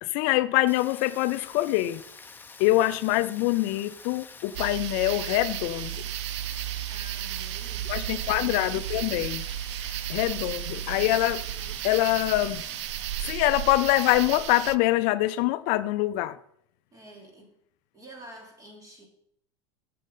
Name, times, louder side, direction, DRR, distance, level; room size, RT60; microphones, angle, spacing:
voice 1, 0.0-2.0 2.6-5.9 7.9-9.4 9.8-11.5 11.8-12.6 13.2-16.4, left 17 dB, 60° left, 0.5 m, -24 dB
Rain, 0.7-13.3, left 4 dB, 15° left, 0.9 m, -47 dB
sound 1, 4.5-14.8, right 13 dB, 75° right, 0.4 m, -34 dB
voice 2, 6.9-8.6 16.9-17.5 17.9-19.1, right 1 dB, 25° right, 3.3 m, -49 dB
9.1 x 7.6 x 5.4 m
supercardioid pair, 105°, 15 cm